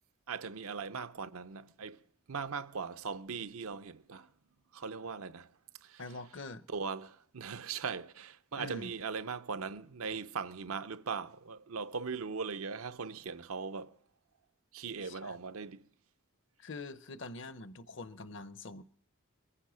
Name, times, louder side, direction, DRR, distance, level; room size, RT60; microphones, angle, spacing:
voice 1, 0.3-2.0 2.3-4.3 4.7-5.5 5.8-6.0 6.7-14.0 14.7-15.8, right 5 dB, 80° right, 0.7 m, -39 dB
voice 2, 6.0-6.7 8.6-8.9 15.0-15.4 16.6-18.8, left 2 dB, 55° left, 0.7 m, -44 dB
22.0 x 10.0 x 6.2 m
head